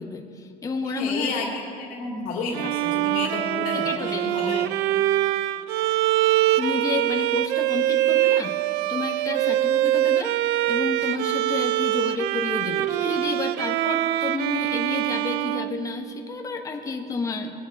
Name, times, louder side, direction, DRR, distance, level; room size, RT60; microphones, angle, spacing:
voice 1, 0.0-1.3 3.7-4.3 6.6-17.7, left 4 dB, 20° left, 4 dB, 1.0 m, -31 dB
voice 2, 0.8-4.7, left 3 dB, 55° left, -2 dB, 2.3 m, -31 dB
Bowed string instrument, 2.5-16.4, right 14 dB, 80° right, 0.4 m, -24 dB
21.0 x 8.6 x 4.7 m, 2.4 s
cardioid pair, 165°, 17 cm